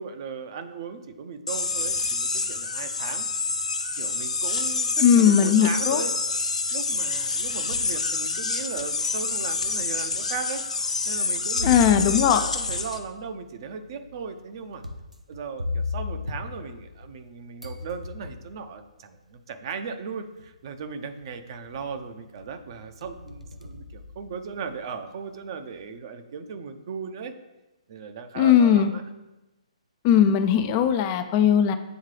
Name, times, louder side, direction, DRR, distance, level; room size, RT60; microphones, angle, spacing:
voice 1, 0.0-3.3 3.9-6.1 6.7-10.6 11.1-14.8 15.3-27.3 27.9-29.0, right 5 dB, 40° right, 8 dB, 0.7 m, -37 dB
sound 1, 1.5-13.0, left 4 dB, 75° left, 0.8 m, -27 dB
voice 2, 5.0-6.0 11.6-12.4 28.4-28.9 30.0-31.7, left 9 dB, 30° left, 9 dB, 0.4 m, -19 dB
sound 2, 7.1-8.0 8.6-8.7 9.6-9.7 11.6-17.3 17.6-18.6 19.8-19.9 20.4-20.8 21.2-22.0 22.4-24.7, left 3 dB, 90° right, 0.7 m, -36 dB
9.0 x 3.6 x 3.2 m, 1.0 s
figure-of-eight pair, 130°, 4 cm